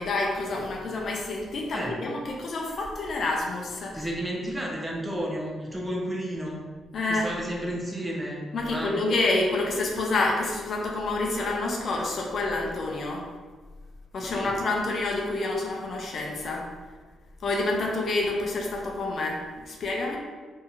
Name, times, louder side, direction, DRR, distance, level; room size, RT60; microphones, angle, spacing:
voice 1, 0.0-4.1 6.9-7.4 8.5-13.3 14.1-16.7 17.4-20.2, left 2 dB, 60° left, 0 dB, 0.5 m, -28 dB
voice 2, 3.9-6.6 7.1-9.1 14.2-14.5, equal, 15° right, -2 dB, 0.6 m, -32 dB
2.7 x 2.7 x 2.3 m, 1.4 s
supercardioid pair, 65°, 0 cm